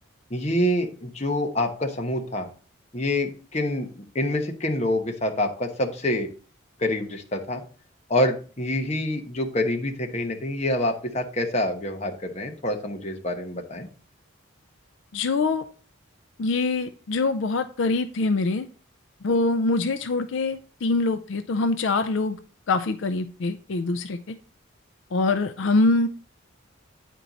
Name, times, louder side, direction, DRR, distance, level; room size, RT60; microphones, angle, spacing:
voice 1, 0.3-2.5 2.9-6.3 6.8-7.6 8.1-13.9, left 1 dB, 35° left, 1.1 m, -26 dB
voice 2, 15.1-15.7 16.4-18.7 19.2-22.4 22.7-24.4 25.1-26.1, left 3 dB, 65° left, 0.4 m, -24 dB
9.1 x 4.4 x 4.0 m
head